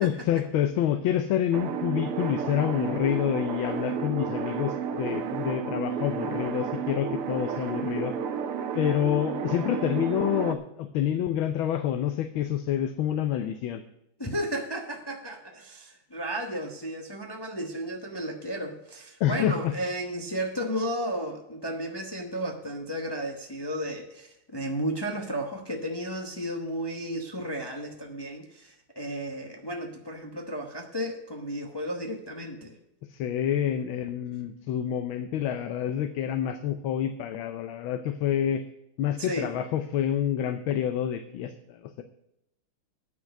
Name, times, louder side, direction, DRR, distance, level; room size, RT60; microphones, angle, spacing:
voice 1, 0.0-8.2 8.7-13.8 19.2-19.7 33.1-38.6 39.0-42.0, left 10 dB, 75° left, 9 dB, 1.4 m, -28 dB
sound 1, 1.5-10.6, right 7 dB, 85° right, 1.8 m, -32 dB
voice 2, 14.2-32.7 39.2-39.5, equal, 40° left, 2 dB, 0.3 m, -33 dB
9.2 x 6.2 x 7.8 m, 0.81 s
omnidirectional pair, 2.4 m